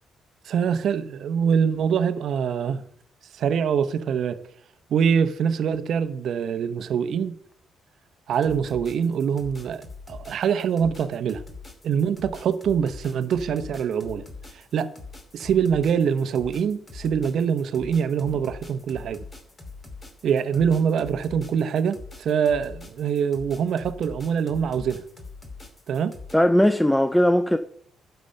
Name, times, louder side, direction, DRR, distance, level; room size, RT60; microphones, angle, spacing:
voice 1, 0.5-2.8 3.3-4.4 4.9-7.4 8.3-11.4 11.8-14.2 14.7-14.9 15.3-19.2 20.2-25.0 25.9-26.2, right 7 dB, 60° right, 0.9 m, -24 dB
sound 1, 8.3-26.3, left 3 dB, 25° left, 2.5 m, -43 dB
voice 2, 26.3-27.6, left 1 dB, 5° left, 0.5 m, -18 dB
11.5 x 6.9 x 5.7 m
cardioid pair, 120°, 0 cm